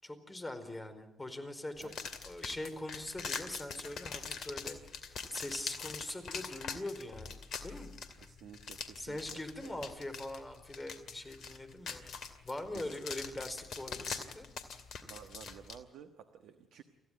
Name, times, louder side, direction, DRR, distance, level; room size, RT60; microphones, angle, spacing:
voice 1, 0.0-1.9 2.2-4.8 5.3-7.9 9.0-12.0 12.4-14.5, left 1 dB, 20° left, 9 dB, 4.6 m, -42 dB
sound 1, 1.8-15.8, left 5 dB, 60° left, 2.4 m, -43 dB
voice 2, 8.2-9.8 12.7-13.0 15.1-16.8, right 8 dB, 70° right, 8 dB, 1.3 m, -53 dB
28.5 x 15.0 x 9.4 m, 0.95 s
hypercardioid pair, 45°, 0 cm